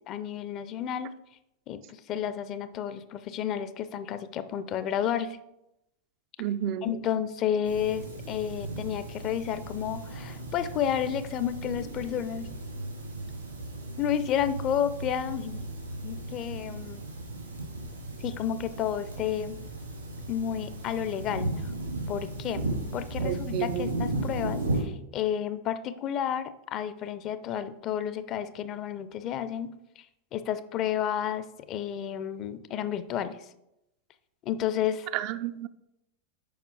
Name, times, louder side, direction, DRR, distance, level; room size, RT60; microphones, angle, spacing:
voice 1, 0.1-1.1 1.7-5.4 6.8-12.5 14.0-15.6 16.0-17.1 18.2-19.6 20.3-21.7 22.1-30.1 30.3-33.4 34.5-35.1, left 9 dB, 35° left, 13 dB, 0.5 m, -31 dB
voice 2, 6.4-6.9 23.2-23.9 35.1-35.7, right 11 dB, 45° right, 11 dB, 0.4 m, -31 dB
sound 1, 7.6-24.8, right 2 dB, 80° right, 2.6 m, -36 dB
7.1 x 5.2 x 4.6 m, 0.86 s
figure-of-eight pair, 90°, 0 cm